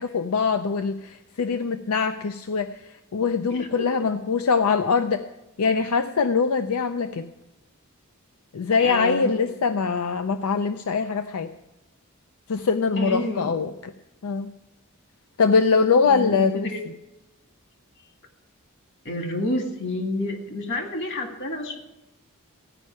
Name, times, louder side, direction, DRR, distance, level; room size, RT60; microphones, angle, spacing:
voice 1, 0.0-2.7 3.1-5.2 5.6-7.3 8.5-11.5 12.5-13.9 14.2-14.5 15.4-16.7, left 5 dB, 90° left, 9 dB, 0.5 m, -23 dB
voice 2, 3.5-3.9 8.8-9.4 13.0-13.5 15.7-16.8 19.0-21.8, left 1 dB, 60° left, 4 dB, 1.9 m, -29 dB
15.0 x 5.4 x 9.5 m, 0.96 s
head